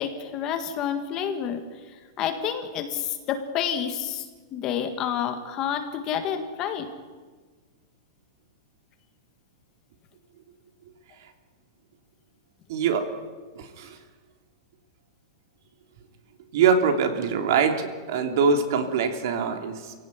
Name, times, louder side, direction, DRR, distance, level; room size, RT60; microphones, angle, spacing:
voice 1, 0.0-1.6 2.2-4.2 4.5-6.9, left 8 dB, 25° left, 7 dB, 1.8 m, -29 dB
voice 2, 12.7-13.1 13.5-14.0 16.5-19.9, right 6 dB, 50° right, 6 dB, 3.1 m, -23 dB
28.0 x 17.0 x 9.5 m, 1.4 s
supercardioid pair, 175°, 2 cm